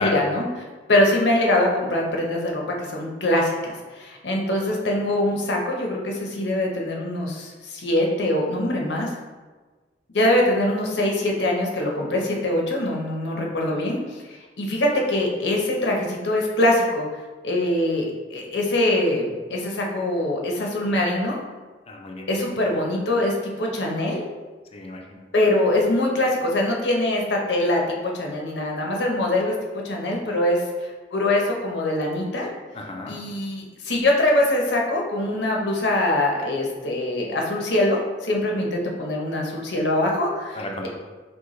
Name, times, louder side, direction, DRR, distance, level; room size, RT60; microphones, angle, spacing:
voice 1, 0.0-9.1 10.1-21.4 22.3-24.2 25.3-27.8 28.1-29.5 29.8-32.5 33.1-40.9, left 1 dB, 75° left, -1 dB, 0.8 m, -23 dB
voice 2, 21.9-22.3 24.7-25.2 32.8-33.2 40.6-40.9, left 3 dB, 35° left, 1 dB, 0.5 m, -31 dB
6.2 x 2.2 x 3.1 m, 1.3 s
head